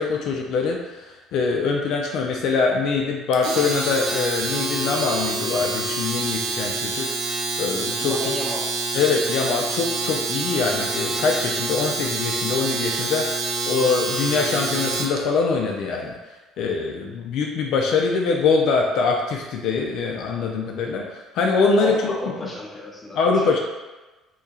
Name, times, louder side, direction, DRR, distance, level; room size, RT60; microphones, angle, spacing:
voice 1, 0.0-7.1 7.6-8.1 8.9-16.1 16.6-22.1 23.2-23.6, left 4 dB, 65° left, 1 dB, 0.4 m, -23 dB
Domestic sounds home sounds, 3.3-15.2, right 3 dB, 65° right, 0.5 m, -27 dB
voice 2, 8.0-8.7 21.8-23.6, left 2 dB, 15° left, -4 dB, 0.8 m, -33 dB
2.8 x 2.7 x 3.6 m, 1.2 s
cardioid pair, 120°, 0 cm